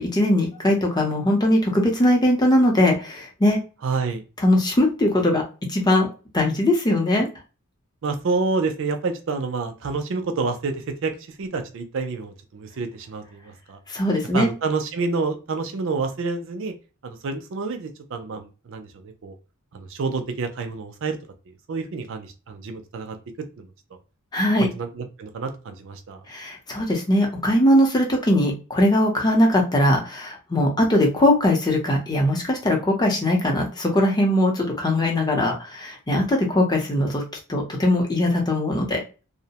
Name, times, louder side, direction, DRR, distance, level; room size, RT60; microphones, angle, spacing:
voice 1, 0.0-3.6 4.4-5.4 5.7-6.1 6.3-7.3 13.9-14.5 24.3-24.7 26.3-37.2 37.5-39.0, left 1 dB, 20° left, 0 dB, 0.6 m, -20 dB
voice 2, 3.8-4.2 8.0-11.1 11.4-13.8 14.3-16.7 17.0-19.3 19.7-21.2 21.7-23.2 23.6-23.7 24.6-26.2, right 4 dB, 55° right, 7 dB, 0.4 m, -28 dB
2.6 x 2.0 x 2.8 m, 0.33 s
head